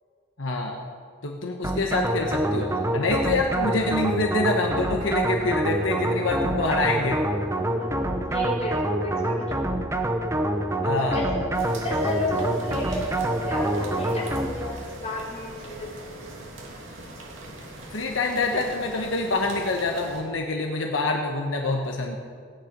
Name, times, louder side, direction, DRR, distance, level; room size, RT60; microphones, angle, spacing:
voice 1, 0.4-0.8 1.2-7.2 10.8-11.2 17.9-22.2, left 2 dB, 80° left, 1 dB, 1.2 m, -26 dB
sound 1, 1.6-14.8, right 1 dB, 15° right, 0.9 m, -26 dB
voice 2, 7.7-9.5 10.9-11.5 11.8-16.3, left 1 dB, 35° left, -4 dB, 3.7 m, -32 dB
sound 2, 11.5-20.2, right 1 dB, 80° right, 2.8 m, -41 dB
17.0 x 10.0 x 5.3 m, 2.1 s
head